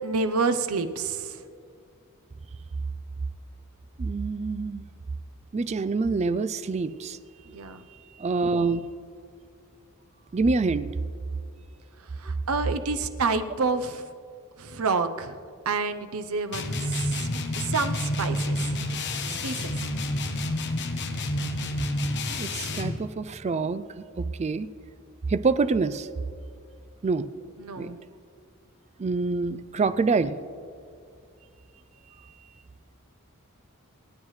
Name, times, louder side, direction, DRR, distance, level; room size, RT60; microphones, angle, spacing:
voice 1, 0.0-1.4 7.5-7.9 12.0-14.1 14.6-15.4 15.7-17.3 17.6-18.7 19.3-19.7 27.6-28.0, right 4 dB, 75° right, 9 dB, 0.7 m, -29 dB
voice 2, 4.0-4.9 5.5-7.2 8.2-8.9 10.3-10.9 22.3-23.8 24.2-24.7 25.3-26.1 27.0-27.3 27.8-27.9 29.0-30.4, right 4 dB, 30° right, 13 dB, 0.4 m, -26 dB
sound 1, 16.5-23.0, left 1 dB, 55° left, 1.1 m, -29 dB
28.0 x 9.3 x 3.2 m, 2.3 s
head